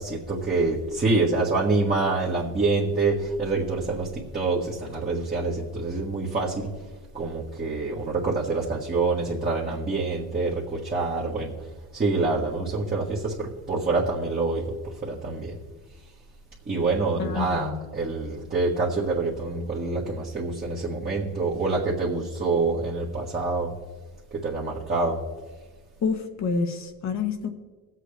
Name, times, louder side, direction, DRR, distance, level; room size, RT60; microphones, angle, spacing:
voice 1, 0.0-6.7 7.1-11.5 11.9-15.6 16.7-23.7 24.4-25.2, right 3 dB, 25° right, -4 dB, 1.5 m, -26 dB
voice 2, 17.2-17.8 26.0-27.5, left 5 dB, 45° left, 6 dB, 1.1 m, -28 dB
20.5 x 7.7 x 3.4 m, 1.3 s
cardioid pair, 135°, 39 cm